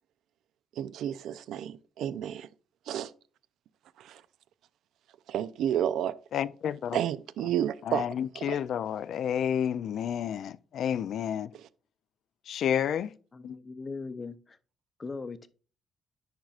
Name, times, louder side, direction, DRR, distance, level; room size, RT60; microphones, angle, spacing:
voice 1, 0.8-2.5 2.9-3.1 4.0-4.2 5.3-6.2 6.9-8.0 8.3-8.6 11.5-11.6, right 10 dB, 80° right, 0.4 m, -31 dB
voice 2, 6.3-7.0 7.9-11.5 12.5-13.1 13.4-13.6, left 9 dB, 70° left, 0.3 m, -30 dB
voice 3, 13.3-14.6 15.0-15.5, left 4 dB, 30° left, 0.6 m, -39 dB
10.0 x 4.7 x 2.4 m
cardioid pair, 90°, 0 cm